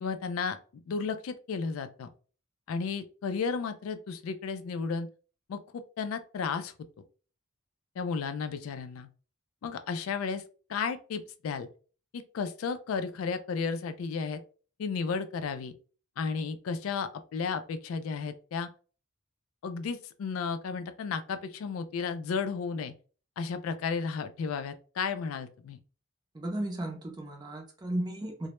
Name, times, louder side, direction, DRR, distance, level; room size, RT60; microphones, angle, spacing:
voice 1, 0.0-2.1 2.7-5.1 5.5-6.7 8.0-9.1 9.6-10.4 10.7-11.7 12.1-14.4 14.8-15.7 16.2-18.7 19.6-22.9 23.4-25.8, left 5 dB, 85° left, 10 dB, 0.3 m, -33 dB
voice 2, 26.3-28.5, right 1 dB, 20° right, 2 dB, 0.4 m, -35 dB
2.1 x 2.0 x 2.9 m, 0.37 s
head